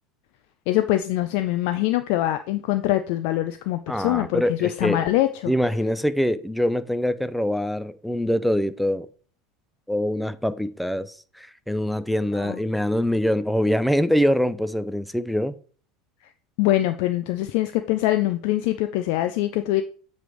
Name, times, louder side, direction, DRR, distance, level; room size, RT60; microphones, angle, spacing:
voice 1, 0.7-5.5 12.4-12.6 16.6-19.8, left 15 dB, 60° left, 0.5 m, -23 dB
voice 2, 3.9-5.1 5.5-9.1 9.9-15.5, equal, ahead, 0.6 m, -24 dB
7.5 x 3.4 x 6.2 m
hypercardioid pair, 75°, 0 cm